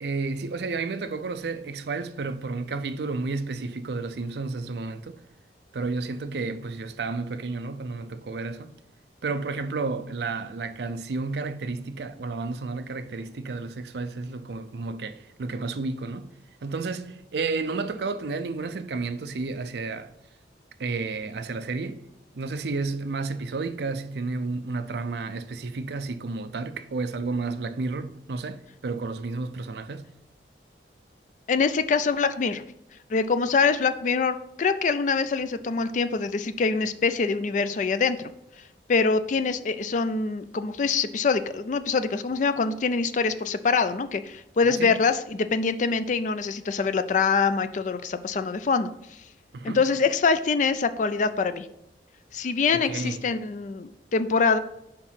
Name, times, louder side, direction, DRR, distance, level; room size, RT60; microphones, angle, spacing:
voice 1, 0.0-5.2 5.7-8.7 9.2-16.3 16.6-20.1 20.8-22.1 22.3-30.1 44.6-45.0 49.5-49.8 52.7-53.3, right 3 dB, 65° right, 0.5 m, -31 dB
voice 2, 31.5-32.6 33.1-38.3 38.9-48.9 49.6-51.7 52.3-54.6, left 5 dB, 45° left, 0.4 m, -24 dB
4.9 x 4.4 x 5.6 m
head